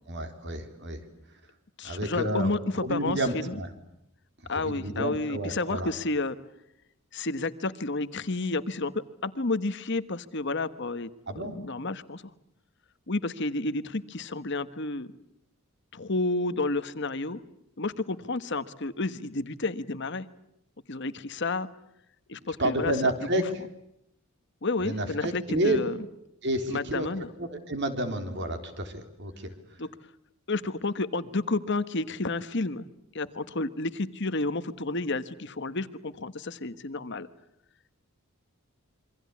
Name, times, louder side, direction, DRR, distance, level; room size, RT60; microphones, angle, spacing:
voice 1, 0.1-1.0 1.8-2.5 2.8-3.7 4.6-5.9 11.3-11.6 22.6-23.4 24.8-25.8 26.4-27.1 27.4-29.5, right 1 dB, 50° right, 7 dB, 3.7 m, -30 dB
voice 2, 1.8-3.6 4.5-6.4 7.1-11.1 11.4-12.2 13.1-15.1 15.9-17.4 17.8-20.2 20.9-21.7 22.3-23.1 24.6-26.0 26.7-27.3 29.8-29.9 30.5-32.8 33.1-37.3, left 2 dB, 55° left, 12 dB, 1.2 m, -31 dB
27.5 x 24.0 x 8.5 m, 0.81 s
head